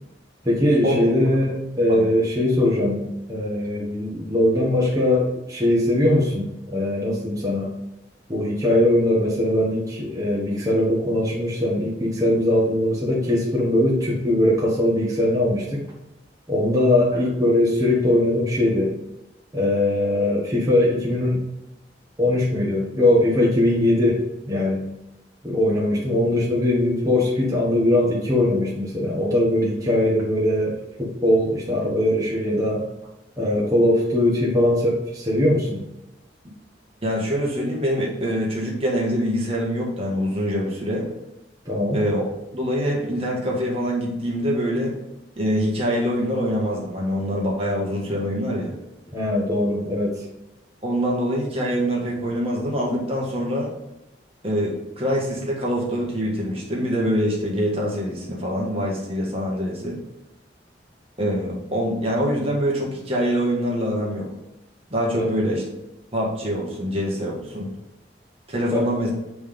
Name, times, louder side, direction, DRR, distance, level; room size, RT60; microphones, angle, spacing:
voice 1, 0.4-7.7 8.3-15.8 16.5-19.0 19.5-21.4 22.2-24.9 25.4-32.8 33.4-35.8 41.6-42.0 49.1-50.2 65.1-65.3 68.7-68.9, left 1 dB, 20° right, -5 dB, 1.4 m, -21 dB
voice 2, 37.0-41.1 41.9-42.2 42.5-44.9 45.3-48.7 50.8-53.7 54.4-60.0 61.2-64.3 64.9-65.6 66.1-67.7 68.5-69.1, equal, 35° right, -3 dB, 1.5 m, -24 dB
7.9 x 3.4 x 3.7 m, 0.92 s
head